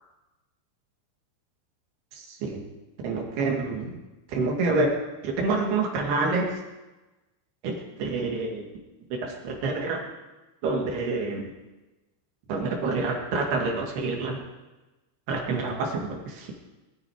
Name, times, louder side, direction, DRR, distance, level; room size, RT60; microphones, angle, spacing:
voice 1, 2.1-2.6 3.0-3.9 4.3-4.9 5.2-6.6 7.6-8.6 9.1-10.0 10.6-11.5 12.5-14.4 15.3-16.5, right 3 dB, 65° right, 1 dB, 4.0 m, -27 dB
22.0 x 12.5 x 5.0 m, 1.1 s
omnidirectional pair, 5.1 m